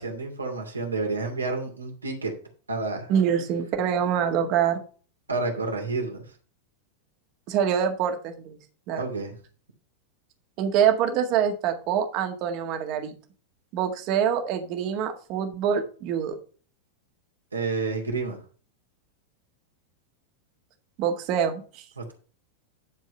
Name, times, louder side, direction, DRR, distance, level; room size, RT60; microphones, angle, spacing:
voice 1, 0.0-2.3 2.7-3.1 5.3-6.2 9.0-9.3 17.5-18.4 22.0-22.1, right 3 dB, 80° right, 2 dB, 2.5 m, -29 dB
voice 2, 3.1-4.8 7.5-8.6 8.9-9.0 10.6-13.2 13.7-16.3 21.0-21.8, right 8 dB, 40° right, 5 dB, 1.8 m, -25 dB
10.5 x 4.7 x 5.7 m, 0.39 s
figure-of-eight pair, 90°, 0 cm